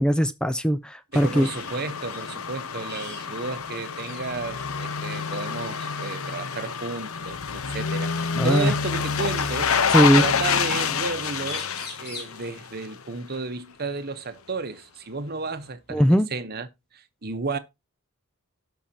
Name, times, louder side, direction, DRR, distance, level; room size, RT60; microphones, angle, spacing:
voice 1, 0.0-1.5 8.4-8.7 9.9-10.3 15.9-16.3, equal, 5° left, 0.5 m, -20 dB
sound 1, 1.1-13.0 13.3-13.4, left 6 dB, 70° left, 0.9 m, -28 dB
voice 2, 1.1-9.7 10.2-11.7 12.0-16.7 16.9-17.6, right 4 dB, 45° right, 1.0 m, -32 dB
sound 2, 1.4-1.8 2.1-2.3 2.9-3.3 3.6-3.7 4.0-4.5 5.7-5.9 7.6-7.7 8.9-9.7 11.1-11.2 11.4-12.4 14.3-14.4 14.9-15.9, left 3 dB, 45° left, 4.5 m, -42 dB
17.5 x 5.8 x 2.8 m
head